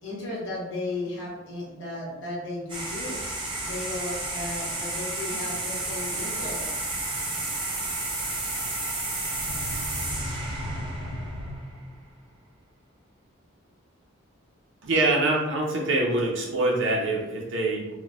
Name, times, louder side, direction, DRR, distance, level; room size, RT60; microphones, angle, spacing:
voice 1, 0.0-3.2 3.6-6.7, left 2 dB, 65° left, -4 dB, 1.0 m, -35 dB
sound 1, 2.7-11.9, right 2 dB, 25° right, 0.6 m, -32 dB
sound 2, 9.2-12.0, left 1 dB, 85° left, 0.5 m, -35 dB
voice 2, 14.8-17.9, right 2 dB, 65° right, -2 dB, 0.5 m, -24 dB
3.9 x 2.1 x 2.3 m, 1.1 s
head